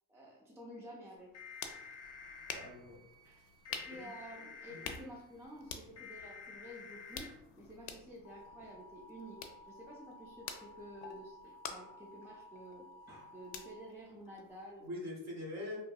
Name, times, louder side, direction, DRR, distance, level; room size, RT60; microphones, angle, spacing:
voice 1, 0.1-1.3 3.2-3.5 3.9-14.9, equal, 5° right, -3 dB, 0.4 m, -51 dB
sound 1, 1.2-14.9, left 6 dB, 75° left, 0.5 m, -50 dB
sound 2, 1.3-2.7 3.6-5.0 6.0-7.3 8.2-13.8, left 4 dB, 35° left, 0.7 m, -52 dB
Wind instrument woodwind instrument, 1.6-5.8, right 8 dB, 70° right, 0.9 m, -69 dB
voice 2, 2.5-3.0 3.7-4.1 4.7-4.8 14.8-15.8, left 1 dB, 40° right, -1 dB, 0.9 m, -44 dB
2.8 x 2.6 x 2.2 m, 0.86 s
cardioid pair, 100°, 42 cm